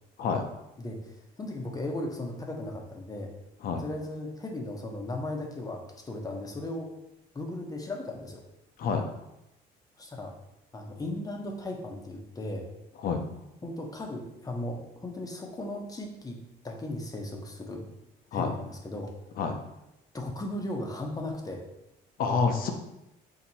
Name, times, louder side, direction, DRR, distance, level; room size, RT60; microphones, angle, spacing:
voice 1, 0.8-3.3 3.8-6.9 7.3-8.4 10.0-10.3 10.7-12.7 13.6-16.4 16.6-17.9 18.3-19.1 20.1-21.6, left 1 dB, 20° left, 1 dB, 0.8 m, -36 dB
voice 2, 22.2-22.7, left 5 dB, 60° left, 5 dB, 0.7 m, -27 dB
4.4 x 2.9 x 4.1 m, 0.89 s
cardioid pair, 110°, 17 cm